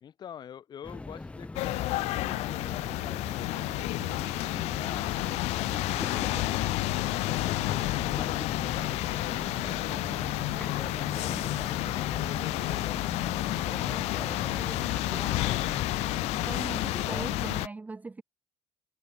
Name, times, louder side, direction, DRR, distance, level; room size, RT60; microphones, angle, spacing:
voice 1, 0.0-6.7 7.2-15.5, left 9 dB, 40° left, 1.5 m, -47 dB
sound 1, 0.8-17.7, left 2 dB, 10° left, 1.0 m, -40 dB
sound 2, 1.6-17.7, left 20 dB, 70° left, 0.4 m, -30 dB
sound 3, 2.2-15.0, right 7 dB, 35° right, 1.1 m, -50 dB
voice 2, 16.4-18.2, right 3 dB, 15° right, 0.8 m, -39 dB
cardioid pair, 125°, 11 cm